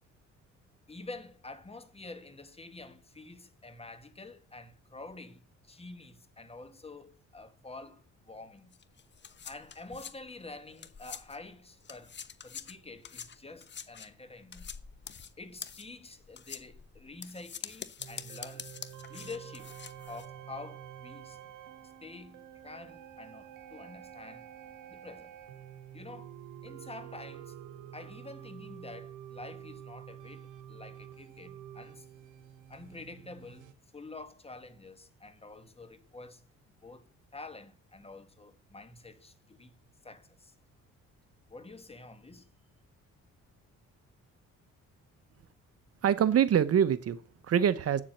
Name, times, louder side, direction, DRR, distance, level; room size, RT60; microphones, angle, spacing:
voice 1, 0.9-8.7 9.4-12.2 12.4-14.7 15.4-18.7 19.1-19.7 20.1-21.4 22.0-24.5 24.9-25.3 25.9-26.3 26.6-27.5 27.9-32.1 32.7-36.4 36.8-37.1 37.3-39.7 40.0-40.5 41.5-42.4, left 3 dB, 20° left, 1.5 m, -48 dB
sound 1, 8.7-11.5 11.8-20.3, left 7 dB, 35° left, 0.9 m, -45 dB
sound 2, 18.0-33.7, right 10 dB, 90° right, 1.1 m, -48 dB
voice 2, 46.0-48.0, right 9 dB, 50° right, 0.9 m, -25 dB
8.5 x 7.4 x 7.9 m
cardioid pair, 90°, 30 cm